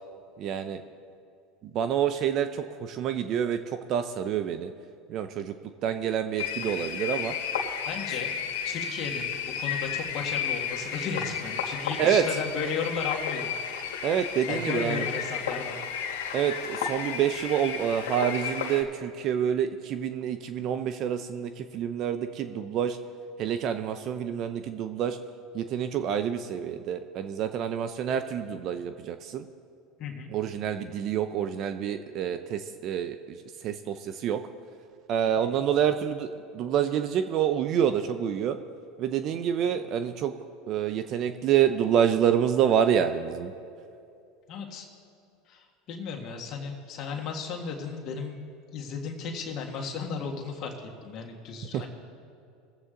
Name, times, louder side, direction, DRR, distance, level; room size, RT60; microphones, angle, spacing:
voice 1, 0.4-0.8 1.7-3.6 3.9-4.7 5.1-5.5 5.8-7.3 12.0-12.2 14.0-15.0 16.3-23.0 23.4-25.2 25.5-29.4 30.3-33.4 33.6-34.4 35.1-36.3 36.5-38.6 39.0-40.3 40.7-43.5 51.7-51.8, right 9 dB, 50° right, 9 dB, 0.6 m, -27 dB
sound 1, 6.4-18.8, left 7 dB, 85° left, 1.5 m, -33 dB
voice 2, 7.9-8.4 8.7-13.5 14.5-15.8 30.0-30.3 35.4-35.6 44.5-44.9 45.5-48.4 48.7-50.7 51.0-51.9, left 5 dB, 50° left, 1 dB, 1.7 m, -35 dB
21.0 x 8.0 x 3.8 m, 2.5 s
supercardioid pair, 100°, 0 cm